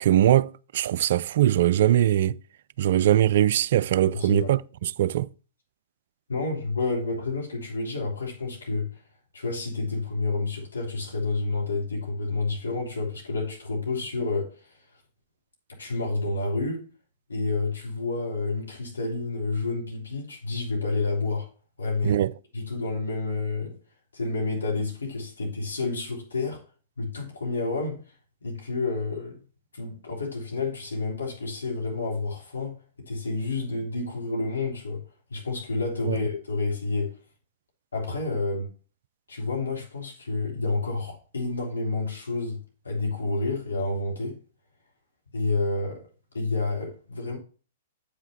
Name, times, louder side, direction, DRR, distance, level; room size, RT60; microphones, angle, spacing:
voice 1, 0.0-2.4 2.8-5.3 22.0-22.3 36.1-36.2, right 12 dB, 55° right, 0.3 m, -21 dB
voice 2, 4.1-4.5 6.3-8.9 9.3-14.5 15.8-16.8 17.3-21.5 21.8-22.2 22.5-23.7 24.1-26.6 27.0-28.0 28.4-29.4 29.8-32.8 33.1-35.0 35.3-37.2 37.9-38.7 39.3-44.4 45.3-46.0 46.3-47.4, left 3 dB, 75° left, 3.1 m, -29 dB
8.2 x 5.7 x 4.3 m
figure-of-eight pair, 110°, 0 cm